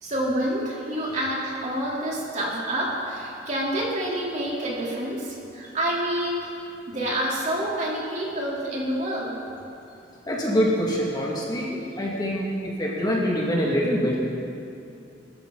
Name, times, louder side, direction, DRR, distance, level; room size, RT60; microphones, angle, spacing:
voice 1, 0.0-6.5 6.9-9.3, right 1 dB, 40° right, -5 dB, 3.6 m, -28 dB
voice 2, 10.3-14.2, equal, 20° left, -4 dB, 2.2 m, -25 dB
23.0 x 13.5 x 4.0 m, 2.6 s
head